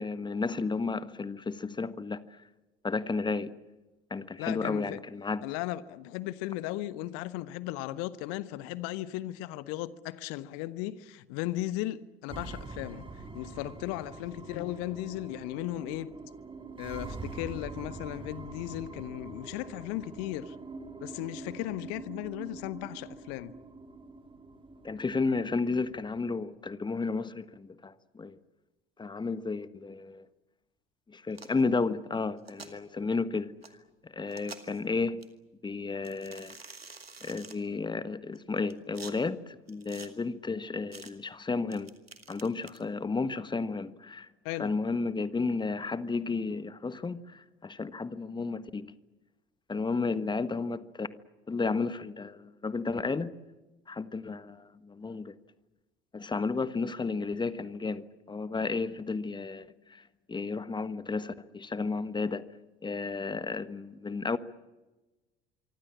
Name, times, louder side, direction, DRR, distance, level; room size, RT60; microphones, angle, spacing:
voice 1, 0.0-2.4 2.8-3.6 4.1-5.4 24.8-28.4 29.0-30.2 31.1-33.5 34.0-35.2 35.6-36.6 37.2-41.9 42.3-48.9 49.7-51.2 51.5-53.3 53.9-55.4 56.1-60.0 60.3-62.4 62.8-64.4, left 4 dB, 15° left, 1.4 m, -32 dB
voice 2, 4.4-5.0 5.4-13.1 13.3-16.1 16.8-20.5 21.0-23.5 44.4-44.7, left 15 dB, 50° left, 1.3 m, -36 dB
sound 1, 12.3-26.3, right 3 dB, 15° right, 3.2 m, -45 dB
sound 2, 31.3-31.6 32.4-32.7 33.6-33.7 34.3-34.8 35.2-35.3 36.0-37.6 38.3-39.1 39.7-40.1 40.9-41.1 41.7-42.8, right 4 dB, 85° right, 2.2 m, -47 dB
25.5 x 24.5 x 7.4 m
figure-of-eight pair, 65°, 29 cm